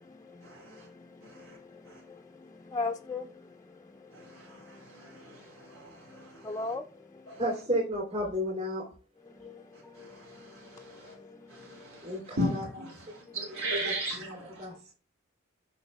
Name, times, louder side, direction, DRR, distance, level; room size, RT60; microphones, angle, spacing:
voice 1, 0.0-4.3 4.6-4.8 5.1-5.2 6.1-6.8 9.4-12.3 13.3-13.4, left 3 dB, 15° left, 0.5 m, -41 dB
voice 2, 5.0-5.4 5.7-5.9 7.3-7.4 11.0-11.1 11.5-12.0 12.3-14.6, equal, 75° right, 3.1 m, -34 dB
voice 3, 7.4-8.8 12.0-12.8 13.3-13.6 14.2-14.7, equal, 35° right, 3.6 m, -32 dB
8.1 x 5.6 x 3.4 m
head